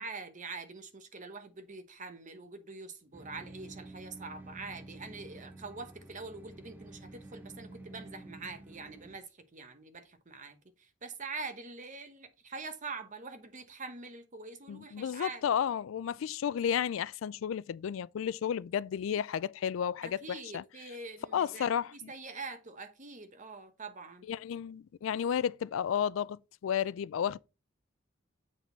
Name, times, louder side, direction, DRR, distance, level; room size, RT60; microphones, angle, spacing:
voice 1, 0.0-15.4 20.0-24.3, right 3 dB, 40° right, 1.0 m, -44 dB
sound 1, 3.1-9.2, right 2 dB, 10° right, 0.8 m, -50 dB
voice 2, 14.7-20.6 21.3-22.1 24.3-27.4, left 8 dB, 80° left, 0.3 m, -32 dB
7.6 x 4.2 x 4.5 m
head